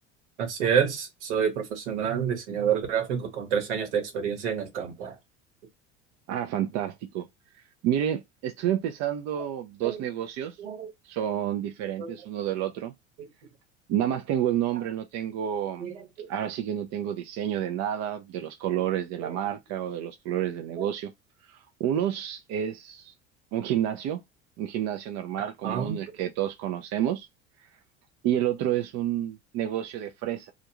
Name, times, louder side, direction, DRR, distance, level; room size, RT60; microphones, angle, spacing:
voice 1, 0.4-5.2 9.8-10.0 10.6-10.9 12.0-12.2 13.2-13.3 15.8-16.3 19.2-19.5 20.8-20.9 25.6-26.0, right 7 dB, 75° right, 1.2 m, -28 dB
voice 2, 6.3-7.3 7.8-10.6 11.0-12.9 13.9-15.9 16.3-21.1 21.5-23.1 23.5-24.2 24.6-27.3 28.2-30.5, right 11 dB, 50° right, 0.6 m, -29 dB
2.4 x 2.2 x 2.9 m
hypercardioid pair, 70°, 35 cm